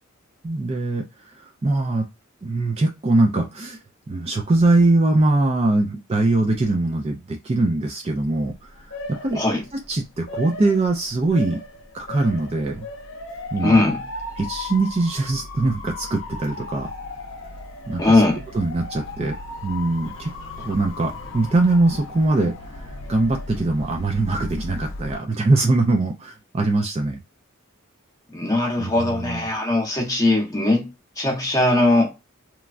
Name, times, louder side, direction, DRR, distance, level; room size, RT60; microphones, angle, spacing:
voice 1, 0.4-1.0 1.3-2.1 2.4-3.8 4.1-9.4 9.7-11.6 11.9-12.9 13.5-13.8 14.4-16.9 17.9-18.2 18.5-19.4 19.6-20.3 20.6-22.5 23.1-27.2 28.8-29.5, right 2 dB, 30° right, 0.4 m, -22 dB
Motor vehicle (road) / Siren, 8.4-25.2, left 2 dB, 65° left, 0.6 m, -36 dB
voice 2, 13.6-14.0 18.0-18.4 28.3-30.9 31.2-32.1, left 2 dB, 15° left, 0.9 m, -19 dB
3.0 x 2.3 x 2.4 m
head